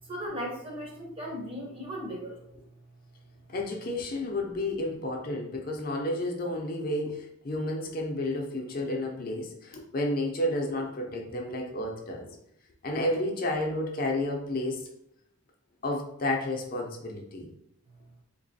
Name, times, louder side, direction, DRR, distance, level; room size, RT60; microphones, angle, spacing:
voice 1, 0.0-2.4, equal, 25° right, -1 dB, 0.8 m, -37 dB
voice 2, 3.5-12.3 12.8-14.9 15.8-17.5, left 1 dB, 40° left, 1 dB, 0.5 m, -31 dB
3.9 x 2.9 x 2.7 m, 0.75 s
head